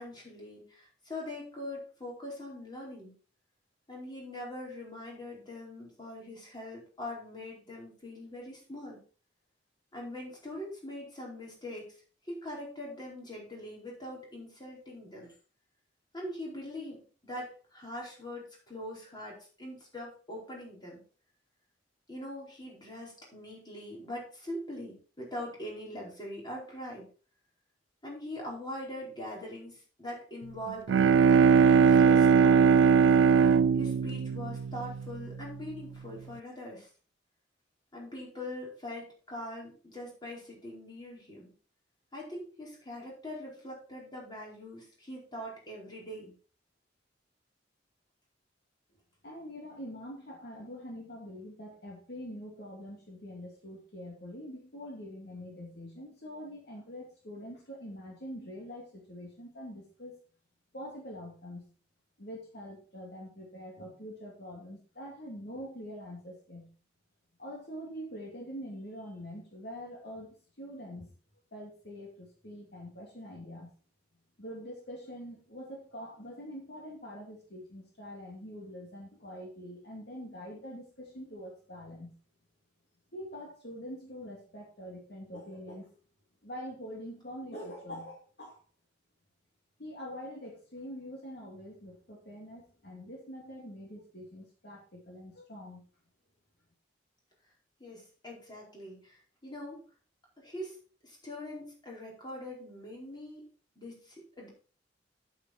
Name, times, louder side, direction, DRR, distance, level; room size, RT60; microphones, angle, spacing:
voice 1, 0.0-3.1 3.9-9.0 9.9-12.0 12.2-15.3 16.1-21.0 22.1-27.1 28.0-31.0 31.6-32.7 33.8-36.9 37.9-41.5 42.1-46.3 97.8-99.8 100.4-100.7 101.0-103.4 103.7-104.5, left 1 dB, 25° left, -3 dB, 4.7 m, -42 dB
Bowed string instrument, 30.7-35.4, right 6 dB, 80° right, 0.3 m, -21 dB
voice 2, 49.2-60.2 60.7-61.7 62.2-66.7 67.4-71.1 71.5-73.7 74.4-82.2 83.1-85.9 86.4-88.6 89.8-95.8, equal, 60° left, -1 dB, 2.5 m, -44 dB
8.9 x 8.6 x 4.4 m, 0.38 s
head